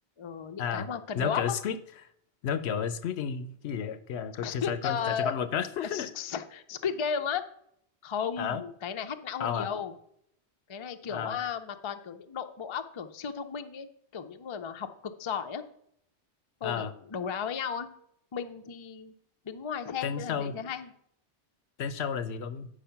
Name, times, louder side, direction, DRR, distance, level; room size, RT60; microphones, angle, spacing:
voice 1, 0.2-1.6 4.4-5.3 5.9-7.4 8.0-9.9 10.7-15.6 16.6-17.9 18.3-19.1 19.4-20.9, left 7 dB, 40° left, 8 dB, 0.4 m, -34 dB
voice 2, 1.1-1.8 2.4-6.1 8.4-8.6 9.4-9.7 11.1-11.4 16.6-16.9 20.0-20.5 21.8-22.7, left 7 dB, 75° left, 13 dB, 0.9 m, -32 dB
9.1 x 4.9 x 5.7 m, 0.69 s
omnidirectional pair, 1.1 m